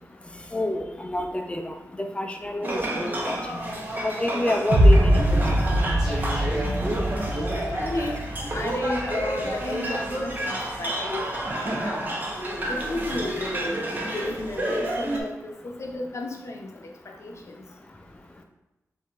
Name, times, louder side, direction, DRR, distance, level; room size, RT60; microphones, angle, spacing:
voice 1, 0.5-3.6 4.0-5.2 5.6-5.8 6.1-6.2, left 1 dB, 20° left, 4 dB, 0.5 m, -29 dB
sound 1, 2.6-15.2, right 1 dB, 30° right, 0.8 m, -30 dB
sound 2, 4.7-10.7, equal, 70° right, 0.8 m, -23 dB
sound 3, 6.0-8.2, equal, 5° right, 1.5 m, -38 dB
voice 2, 7.7-8.2 8.5-11.2 11.5-12.0 12.7-16.7 17.1-17.6, left 2 dB, 55° left, 1 dB, 0.7 m, -33 dB
4.8 x 2.7 x 3.4 m, 0.97 s
wide cardioid pair, 95°, 6 cm